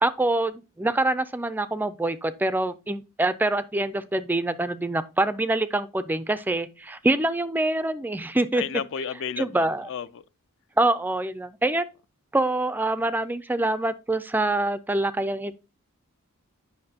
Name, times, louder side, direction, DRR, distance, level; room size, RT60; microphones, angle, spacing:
voice 1, 0.0-8.6 9.4-9.9 10.8-11.8 12.3-15.6, right 2 dB, 10° right, 0.3 m, -25 dB
voice 2, 8.5-10.2, left 7 dB, 60° left, 0.4 m, -32 dB
8.6 x 5.7 x 2.7 m
head